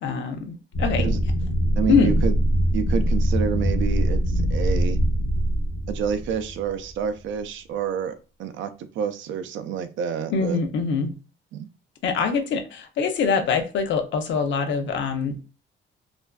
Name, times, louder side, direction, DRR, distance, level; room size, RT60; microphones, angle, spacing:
voice 1, 0.0-1.1 1.9-2.2 10.3-11.1 12.0-15.5, left 5 dB, 70° left, 0.6 m, -24 dB
sound 1, 0.7-6.9, right 1 dB, 90° left, 1.0 m, -23 dB
voice 2, 1.8-2.3 2.7-5.0 5.9-8.1 8.4-8.7 9.0-10.6 11.5-11.7, right 7 dB, 75° right, 0.4 m, -28 dB
2.4 x 2.3 x 2.2 m
cardioid pair, 90°, 20 cm